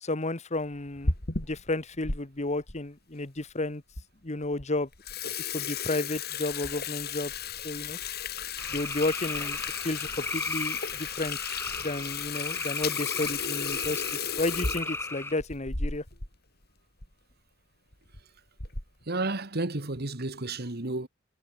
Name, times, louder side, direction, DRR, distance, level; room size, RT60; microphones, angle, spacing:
voice 1, 0.0-1.1 1.4-3.8 4.2-4.9 5.5-7.3 7.6-8.0 8.7-11.4 11.8-14.0 14.4-16.0, left 2 dB, 35° left, 1.4 m, -32 dB
Water tap faucet / Sink (filling or washing), 0.8-2.2 2.7-2.8 3.5-3.6 4.0-4.1 4.4-4.6 4.9-16.3 16.6-16.7 17.0-17.1 17.9-18.2 18.6-19.0, left 5 dB, 50° left, 4.2 m, -34 dB
sound 1, 8.6-15.3, left 2 dB, 10° left, 6.2 m, -36 dB
voice 2, 19.1-21.1, right 2 dB, 50° right, 1.9 m, -31 dB
head